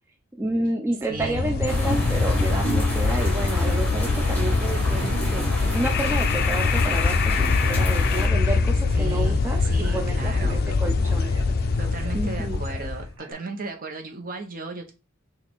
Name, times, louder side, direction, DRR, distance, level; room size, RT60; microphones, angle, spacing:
voice 1, 0.4-5.4 5.7-9.6 9.9-11.3 12.1-12.6, right 2 dB, 10° right, 2 dB, 0.4 m, -30 dB
sound 1, 1.1-13.1, left 4 dB, 50° left, 0.4 m, -23 dB
voice 2, 1.1-1.7 8.9-10.6 11.8-14.9, right 3 dB, 45° right, 3 dB, 0.9 m, -35 dB
sound 2, 1.7-8.3, right 1 dB, 10° left, 1.9 m, -31 dB
Conversation, 2.8-13.3, right 1 dB, 75° right, 0.9 m, -45 dB
6.2 x 2.4 x 3.6 m, 0.30 s
head